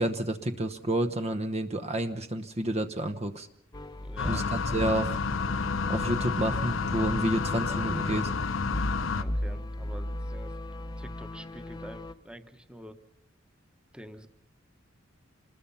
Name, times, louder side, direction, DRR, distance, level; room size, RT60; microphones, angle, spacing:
voice 1, 0.0-3.5 4.2-5.2 5.9-8.3, right 1 dB, 35° right, 9 dB, 1.0 m, -30 dB
sound 1, 3.7-12.1, left 1 dB, 20° left, 0.9 m, -37 dB
voice 2, 4.0-4.5 9.1-10.5 11.0-13.0 13.9-14.3, right 1 dB, 5° right, 8 dB, 1.2 m, -47 dB
sound 2, 4.2-9.2, left 4 dB, 80° left, 1.1 m, -30 dB
27.0 x 20.5 x 5.7 m, 0.70 s
head